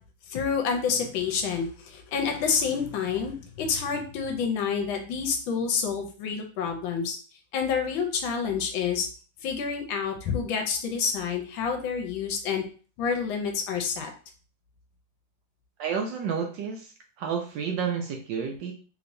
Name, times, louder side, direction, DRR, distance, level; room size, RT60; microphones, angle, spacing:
voice 1, 0.3-7.2 7.5-9.1 9.4-12.6 13.0-14.1, left 6 dB, 75° left, 4 dB, 1.3 m, -28 dB
voice 2, 15.8-16.9 17.2-18.7, right 6 dB, 70° right, 2 dB, 1.2 m, -30 dB
3.4 x 2.9 x 2.6 m, 0.39 s
omnidirectional pair, 2.3 m